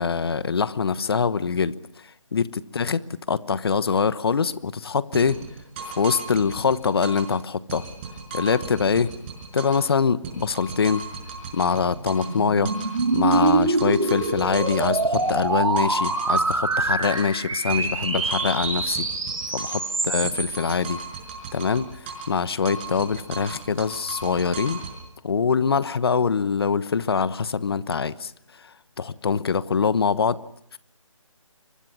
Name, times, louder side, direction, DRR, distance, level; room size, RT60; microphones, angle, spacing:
voice 1, 0.0-1.7 2.3-3.0 3.3-5.4 5.8-7.9 8.3-9.1 9.5-11.0 11.5-12.7 13.1-19.1 19.5-21.0 21.5-21.9 22.3-24.8 25.2-28.3 29.0-30.4 30.7-30.8, left 5 dB, 50° left, 16 dB, 1.1 m, -24 dB
sound 1, 5.1-7.4 7.7-9.9 10.2-12.4 12.6-17.4 17.7-19.9 20.2-22.4 22.6-25.0, right 4 dB, 20° right, 5.4 m, -37 dB
sound 2, 11.0-20.7, right 3 dB, 85° right, 3.0 m, -25 dB
28.5 x 24.5 x 6.0 m, 0.68 s
figure-of-eight pair, 165°, 17 cm